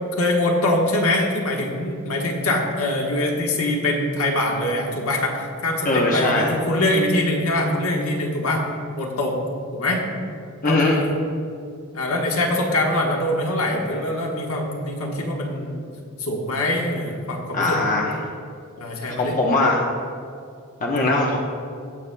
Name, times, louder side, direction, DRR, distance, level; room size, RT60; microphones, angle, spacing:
voice 1, 0.0-8.6 9.0-9.4 9.7-10.0 10.6-11.2 11.9-15.8 16.2-17.8 18.8-19.4 20.8-21.0, left 1 dB, 70° left, 0 dB, 1.4 m, -23 dB
voice 2, 5.8-6.5 10.6-11.0 17.5-18.1 19.1-19.8 20.8-21.4, left 2 dB, 35° left, -2 dB, 0.9 m, -20 dB
18.0 x 6.7 x 2.3 m, 2.4 s
head